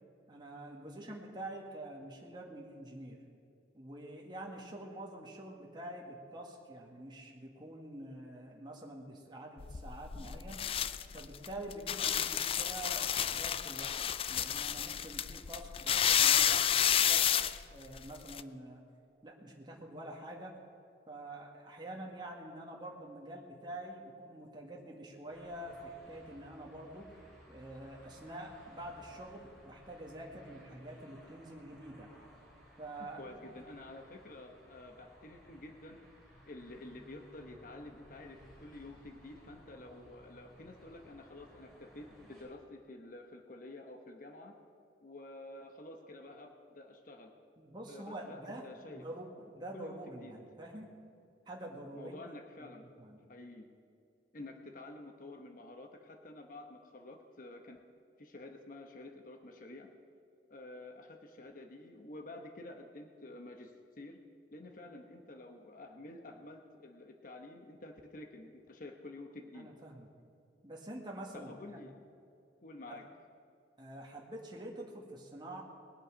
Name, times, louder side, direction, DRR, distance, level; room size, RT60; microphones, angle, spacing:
voice 1, 0.3-3.2 3.7-10.7 11.1-14.0 14.3-17.3 17.7-18.8 19.2-20.6 21.1-27.2 27.5-32.1 32.8-33.6 47.6-50.9 51.4-52.2 52.7-53.3 69.5-70.1 70.6-71.9 72.9-73.0 73.8-75.6, right 1 dB, 25° right, -1 dB, 1.7 m, -46 dB
sound 1, 9.6-18.4, left 9 dB, 30° left, 0.3 m, -30 dB
sound 2, 25.3-42.5, equal, 5° left, 4.3 m, -59 dB
voice 2, 33.2-36.1 36.4-44.6 45.0-47.3 47.9-49.0 49.7-50.3 51.9-52.9 53.3-53.7 54.3-57.8 58.2-59.9 60.5-64.2 64.5-69.7 71.3-71.9 72.6-73.0, left 2 dB, 50° left, 4 dB, 1.0 m, -50 dB
20.5 x 8.1 x 6.2 m, 2.4 s
head